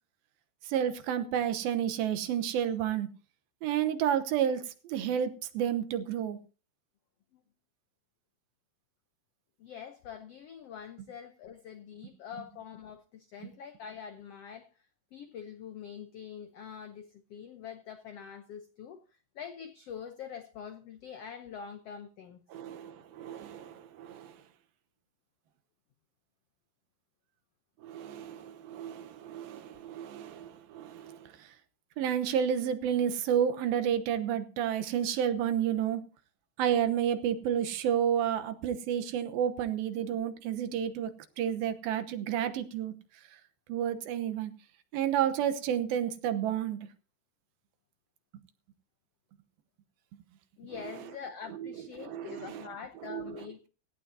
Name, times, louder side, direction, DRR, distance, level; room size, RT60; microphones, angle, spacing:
voice 1, 0.6-3.1 3.6-6.4 22.5-24.4 27.8-31.5 32.0-36.0 36.6-43.0 43.7-44.5 44.9-46.9 51.6-51.7 52.0-52.7 53.0-53.3, right 9 dB, 90° right, 2.9 m, -31 dB
voice 2, 9.6-14.7 15.1-19.0 19.3-22.4 50.6-53.7, left 7 dB, 80° left, 1.3 m, -45 dB
17.5 x 15.0 x 2.8 m
omnidirectional pair, 4.1 m